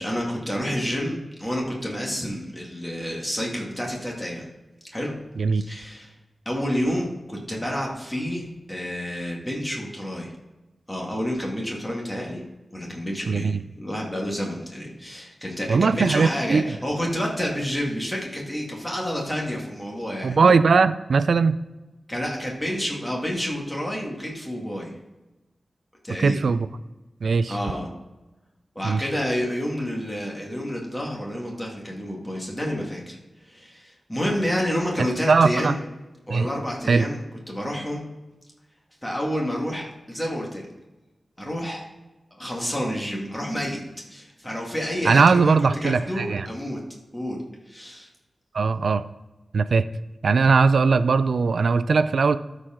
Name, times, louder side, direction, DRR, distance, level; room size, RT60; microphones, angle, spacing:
voice 1, 0.0-4.5 4.9-5.1 5.5-6.1 6.5-10.3 10.9-12.4 12.7-20.4 22.1-24.9 26.0-26.4 27.5-27.9 28.8-33.2 33.4-35.8 36.3-38.0 39.0-40.7 41.4-41.9 42.3-43.8 44.1-45.5 45.8-46.8 47.1-47.4 47.7-48.1, equal, 10° left, -2 dB, 2.0 m, -29 dB
voice 2, 13.3-13.6 15.7-16.6 20.2-21.6 26.2-26.7 27.2-27.6 28.8-29.0 35.3-35.8 36.3-36.5 36.9-37.1 45.0-46.5 48.5-49.0 49.5-49.9 50.2-52.4, right 4 dB, 75° right, 14 dB, 0.4 m, -19 dB
12.5 x 4.9 x 3.7 m, 1.1 s
wide cardioid pair, 115°, 0 cm